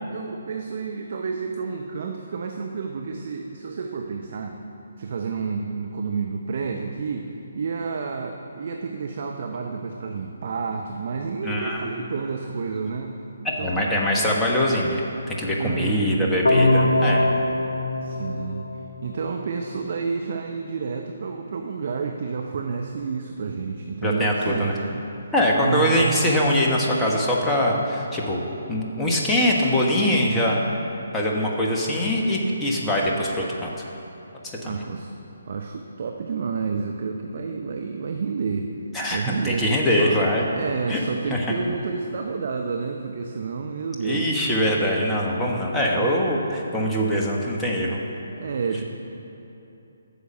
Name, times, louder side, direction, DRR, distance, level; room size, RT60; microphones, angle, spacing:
voice 1, 0.1-4.6 5.0-13.1 13.6-13.9 15.5-16.4 18.0-18.7 19.0-25.0 25.6-26.2 34.6-35.1 35.5-38.7 39.1-40.3 40.5-44.4 45.7-46.1 48.3-48.8, right 5 dB, 50° right, 3 dB, 0.7 m, -30 dB
voice 2, 11.4-11.8 13.4-17.2 24.0-24.7 25.3-28.4 28.7-30.6 31.1-33.7 34.4-34.8 38.9-40.4 40.9-41.0 41.3-41.5 44.0-48.0, equal, 10° left, -3 dB, 1.2 m, -23 dB
sound 1, 16.4-19.4, left 2 dB, 75° left, 0.7 m, -22 dB
9.5 x 6.7 x 7.4 m, 3.0 s
figure-of-eight pair, 140°, 0 cm